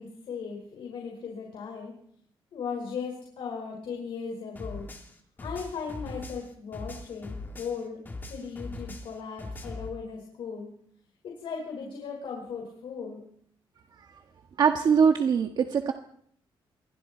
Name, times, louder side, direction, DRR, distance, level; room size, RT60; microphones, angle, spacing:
voice 1, 0.0-1.9 2.5-4.9 5.4-8.0 8.3-10.7 11.2-13.2, left 5 dB, 70° left, 1 dB, 5.4 m, -37 dB
sound 1, 4.6-7.8 8.1-9.9, left 2 dB, 20° left, 2.9 m, -40 dB
voice 2, 14.6-15.9, right 6 dB, 50° right, 5 dB, 1.5 m, -22 dB
27.0 x 22.5 x 4.5 m, 0.65 s
wide cardioid pair, 170°, 9 cm